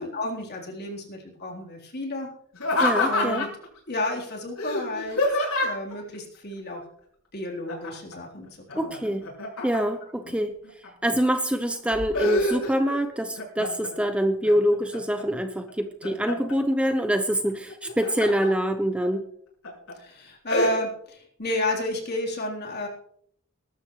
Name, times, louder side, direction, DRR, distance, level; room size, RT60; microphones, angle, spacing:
voice 1, 0.0-2.3 3.0-3.5 3.9-5.2 5.6-6.8 7.3-9.2 10.2-10.4 19.9-22.9, left 1 dB, 50° left, -1 dB, 3.9 m, -32 dB
Laughter, 2.5-3.7 4.6-5.9 7.7-8.1 8.5-10.1 10.6-11.3 11.7-13.0 13.4-13.9 14.4-15.2 15.7-16.5 17.7-18.5 19.0-19.1 19.6-19.9 20.5-20.7, left 2 dB, 80° left, 6.4 m, -27 dB
voice 2, 2.8-3.4 8.8-9.2 9.6-10.6 11.0-19.3, equal, 5° right, 7 dB, 0.8 m, -25 dB
21.0 x 12.5 x 3.2 m, 0.65 s
head